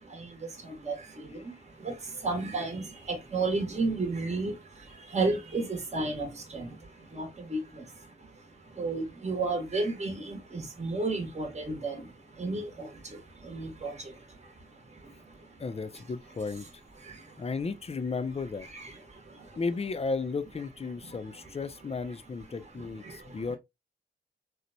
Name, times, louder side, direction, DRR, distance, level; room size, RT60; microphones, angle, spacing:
voice 1, 0.6-1.0 1.8-1.9 2.2-4.5 5.1-6.8 7.1-7.6 8.8-12.0 12.4-12.9 13.5-13.9 18.7-19.0 21.1-21.2 22.8-23.2, right 3 dB, 35° right, 1.0 m, -32 dB
voice 2, 15.6-16.8 17.4-18.7 19.6-23.6, left 4 dB, 30° left, 0.4 m, -34 dB
2.9 x 2.1 x 2.5 m
cardioid pair, 50°, 21 cm